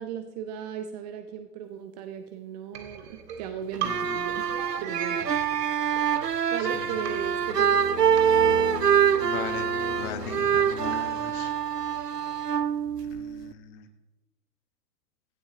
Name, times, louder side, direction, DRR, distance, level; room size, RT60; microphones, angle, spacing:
voice 1, 0.0-4.5 4.8-6.1 6.5-7.8, right 8 dB, 25° right, 8 dB, 0.8 m, -37 dB
sound 1, 2.7-6.7 7.1-11.5, right 8 dB, 45° right, 1.9 m, -39 dB
sound 2, 3.7-13.5, right 8 dB, 80° right, 0.8 m, -25 dB
voice 2, 3.8-4.1 6.6-6.9 9.2-11.6 13.1-13.9, left 8 dB, 25° left, 9 dB, 1.3 m, -39 dB
sound 3, 7.0-11.6, left 5 dB, 70° left, 1.7 m, -38 dB
17.0 x 16.0 x 2.9 m, 1.0 s
figure-of-eight pair, 110°, 47 cm